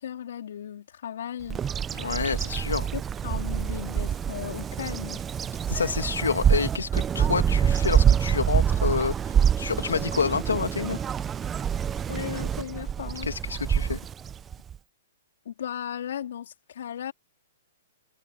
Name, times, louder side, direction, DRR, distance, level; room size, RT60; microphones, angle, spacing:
voice 1, 0.0-1.6 2.9-5.2 12.1-13.3 15.5-17.1, left 9 dB, 65° left, 3.8 m, -36 dB
Bird vocalization bird call bird song, 1.5-14.8, right 8 dB, 15° right, 0.6 m, -26 dB
voice 2, 1.9-2.9 5.7-11.0 13.2-14.0, left 5 dB, 85° left, 2.1 m, -28 dB
hypercardioid pair, 130°, 0 cm